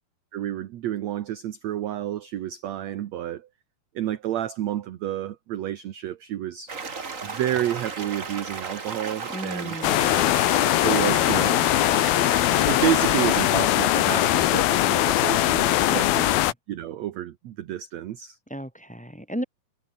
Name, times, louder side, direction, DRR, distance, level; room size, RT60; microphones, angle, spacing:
voice 1, 0.3-3.5 4.0-6.7 7.2-9.8 10.8-11.7 12.7-16.3 16.7-18.4, right 12 dB, 65° right, 1.9 m, -30 dB
sound 1, 6.7-13.5, right 4 dB, 30° right, 1.8 m, -35 dB
voice 2, 9.3-10.2 15.8-16.5 18.5-19.4, equal, ahead, 4.9 m, -35 dB
sound 2, 9.8-16.5, left 14 dB, 90° left, 3.1 m, -21 dB
omnidirectional pair, 4.2 m